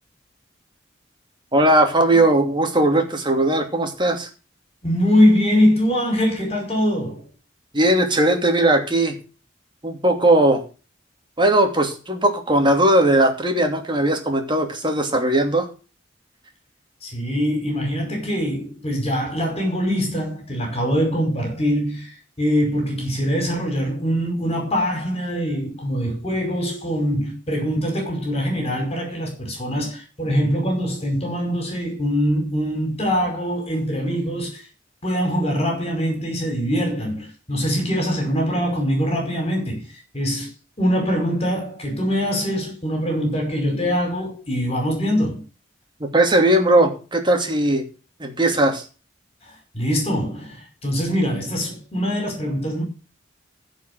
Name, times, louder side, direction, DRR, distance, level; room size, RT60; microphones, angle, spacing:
voice 1, 1.5-4.3 7.7-9.2 9.8-10.6 11.4-15.7 46.0-47.8 48.2-48.8, right 1 dB, 25° right, 2.7 m, -18 dB
voice 2, 4.8-7.3 17.0-34.6 35.0-40.5 40.8-45.4 49.5-52.8, equal, 35° left, 5.2 m, -23 dB
15.5 x 5.6 x 6.8 m
head